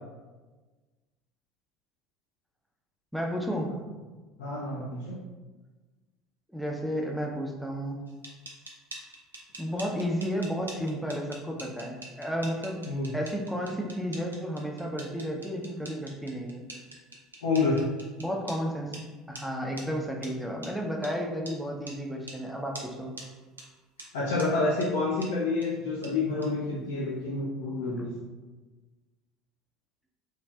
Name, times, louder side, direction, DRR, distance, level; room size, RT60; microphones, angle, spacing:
voice 1, 3.1-3.7 6.5-8.0 9.6-12.8 13.1-16.6 18.2-18.9 19.3-23.1 28.0-28.1, equal, ahead, 0 dB, 0.5 m, -32 dB
voice 2, 4.4-5.2 12.9-13.1 17.4-17.8 24.1-28.1, left 3 dB, 65° left, -5 dB, 0.4 m, -28 dB
sound 1, 8.1-18.6 18.9-19.0 19.3-19.4 19.8-19.9 20.2-20.3 20.6-20.7 21.0-21.1 21.5-21.6 21.9-22.0 22.3-22.4 22.7-22.9 23.2-23.3 23.6-23.7 24.0-24.1 24.4-24.5 24.8-24.9 25.2-25.3 25.6-25.7 26.0-26.1 26.4-26.5, right 2 dB, 85° right, 0.4 m, -43 dB
3.1 x 2.4 x 2.2 m, 1.3 s
figure-of-eight pair, 65°, 0 cm